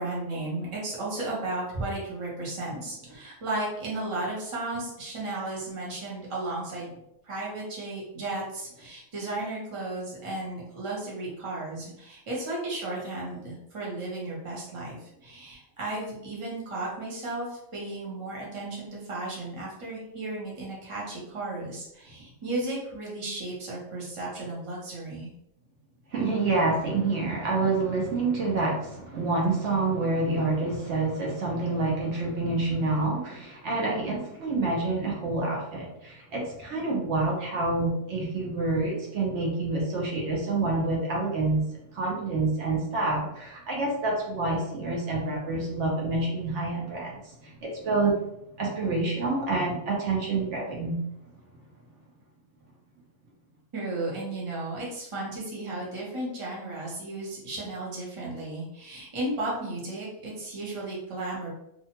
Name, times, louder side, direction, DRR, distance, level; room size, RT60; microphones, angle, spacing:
voice 1, 0.0-6.9 7.2-25.3 53.7-61.5, right 2 dB, 30° right, -5 dB, 0.8 m, -34 dB
voice 2, 26.1-41.6 41.9-48.2 48.6-51.0, right 3 dB, 70° right, -2 dB, 1.0 m, -27 dB
2.7 x 2.2 x 2.9 m, 0.82 s
omnidirectional pair, 1.3 m